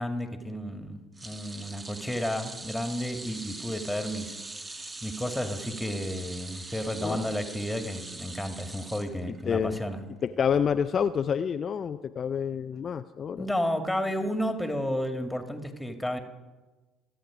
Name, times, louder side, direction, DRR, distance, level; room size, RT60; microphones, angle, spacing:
voice 1, 0.0-4.4 5.0-10.0 13.4-16.2, equal, 5° left, 6 dB, 2.1 m, -32 dB
sound 1, 1.2-9.6 10.0-10.2 11.4-11.5, right 2 dB, 25° right, 1.7 m, -42 dB
voice 2, 9.4-9.8 10.2-13.5, left 7 dB, 40° left, 9 dB, 0.5 m, -28 dB
27.0 x 9.1 x 5.0 m, 1.2 s
figure-of-eight pair, 55°, 0 cm